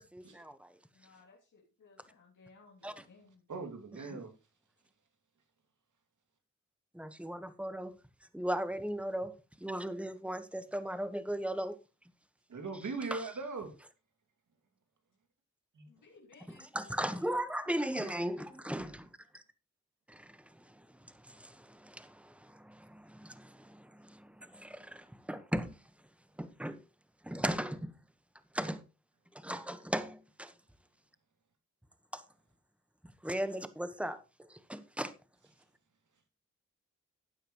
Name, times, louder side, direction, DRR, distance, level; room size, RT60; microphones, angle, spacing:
voice 1, 0.0-0.8 2.8-3.0 4.1-4.2 6.9-8.0 8.3-11.8 13.1-13.3 16.5-19.4 20.1-25.8 26.4-26.8 27.2-28.0 28.5-28.8 29.3-30.5 32.1-32.2 33.2-34.2 34.5-35.1, right 1 dB, 5° right, 1.3 m, -38 dB
voice 2, 0.9-3.4 15.9-16.9, left 4 dB, 85° left, 3.0 m, -60 dB
voice 3, 3.5-4.3 12.5-13.7 15.8-15.9 18.0-18.1, right 4 dB, 75° right, 2.6 m, -40 dB
13.0 x 9.1 x 3.1 m
cardioid pair, 60°, 30 cm